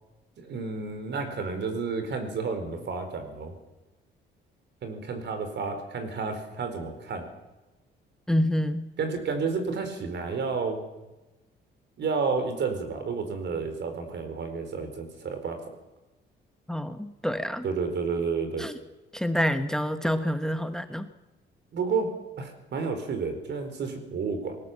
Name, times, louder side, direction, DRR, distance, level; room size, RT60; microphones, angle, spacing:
voice 1, 0.4-3.5 4.8-7.3 9.0-10.8 12.0-15.6 17.6-18.7 21.7-22.1 22.4-24.6, right 4 dB, 60° right, 7 dB, 4.6 m, -31 dB
voice 2, 8.3-8.9 16.7-17.7 18.6-18.7 19.1-21.1, equal, 5° left, 9 dB, 1.1 m, -27 dB
20.5 x 17.5 x 7.5 m, 1.1 s
cardioid pair, 90°, 20 cm